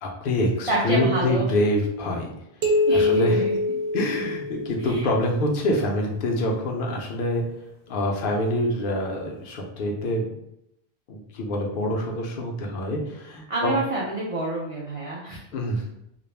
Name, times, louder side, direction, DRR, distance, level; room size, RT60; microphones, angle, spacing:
voice 1, 0.0-2.3 2.9-3.4 3.9-7.4 7.9-10.3 11.1-13.7 15.5-15.8, left 1 dB, 65° left, 0 dB, 0.7 m, -25 dB
voice 2, 0.7-1.4 2.9-3.6 4.9-5.1 13.5-15.4, right 1 dB, 50° right, -4 dB, 0.4 m, -27 dB
sound 1, 2.6-5.0, left 2 dB, 75° right, 0.8 m, -24 dB
2.3 x 2.0 x 3.1 m, 0.79 s
omnidirectional pair, 1.1 m